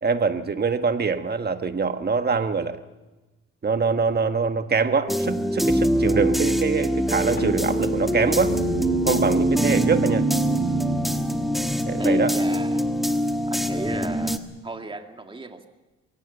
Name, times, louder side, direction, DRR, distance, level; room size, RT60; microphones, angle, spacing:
voice 1, 0.0-2.8 3.6-8.5 9.0-10.3 11.8-12.3, right 5 dB, 35° right, 9 dB, 1.4 m, -24 dB
sound 1, 5.1-14.4, equal, ahead, 1.4 m, -24 dB
Keyboard (musical), 7.4-11.0, left 11 dB, 35° left, 2.7 m, -39 dB
sound 2, 8.4-12.1, right 11 dB, 55° right, 0.9 m, -28 dB
voice 2, 12.0-12.9 13.5-15.7, right 2 dB, 15° right, 5 dB, 2.1 m, -35 dB
22.0 x 17.0 x 8.0 m, 1.1 s
cardioid pair, 90°, 30 cm